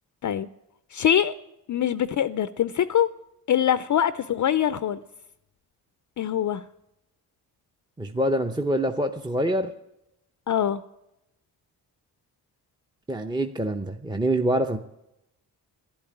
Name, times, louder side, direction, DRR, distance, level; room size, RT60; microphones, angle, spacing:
voice 1, 0.9-1.3 1.7-3.1 3.5-5.0 6.2-6.6 10.5-10.8, left 9 dB, 45° left, 14 dB, 0.5 m, -23 dB
voice 2, 8.0-9.7 13.1-14.8, right 1 dB, 10° right, 5 dB, 0.7 m, -25 dB
11.0 x 8.7 x 8.8 m, 0.86 s
cardioid pair, 65°, 40 cm